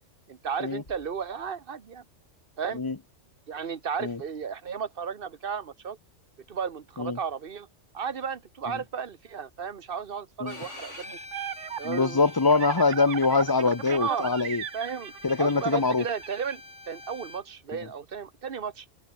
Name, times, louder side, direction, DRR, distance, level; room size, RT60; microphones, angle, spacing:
voice 1, 0.3-2.0 2.6-2.8 3.5-6.0 6.5-7.7 7.9-11.2 11.8-12.3 13.9-14.4 14.7-15.1 15.4-16.6 16.9-18.9, right 6 dB, 50° right, 1.3 m, -34 dB
sound 1, 0.9-2.7, left 1 dB, 45° left, 7.5 m, -60 dB
Bowed string instrument, 10.5-17.4, left 2 dB, 75° left, 5.0 m, -46 dB
sound 2, 10.8-16.6, right 10 dB, 75° right, 1.1 m, -37 dB
voice 2, 11.8-14.6 15.2-16.0, left 4 dB, 20° left, 0.7 m, -24 dB
open air
omnidirectional pair, 1.3 m